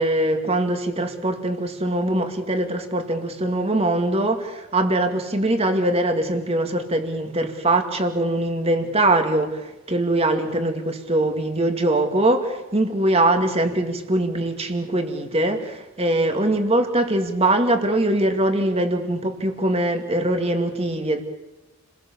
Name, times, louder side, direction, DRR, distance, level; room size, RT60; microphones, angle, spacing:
voice 1, 0.0-21.2, right 1 dB, 25° right, 6 dB, 2.3 m, -22 dB
30.0 x 21.5 x 7.1 m, 0.99 s
head